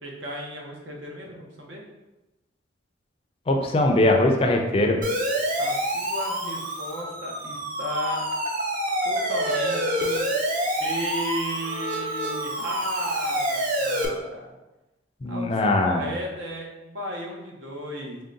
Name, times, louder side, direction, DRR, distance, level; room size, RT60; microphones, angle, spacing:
voice 1, 0.0-1.8 5.6-8.3 9.0-10.2 10.8-14.5 15.3-18.2, equal, 85° right, 0 dB, 0.8 m, -34 dB
voice 2, 3.5-5.0 15.2-16.1, left 2 dB, 30° left, 2 dB, 0.4 m, -21 dB
Siren, 5.0-14.1, equal, 45° right, 0.5 m, -27 dB
3.7 x 2.1 x 3.7 m, 1.0 s
head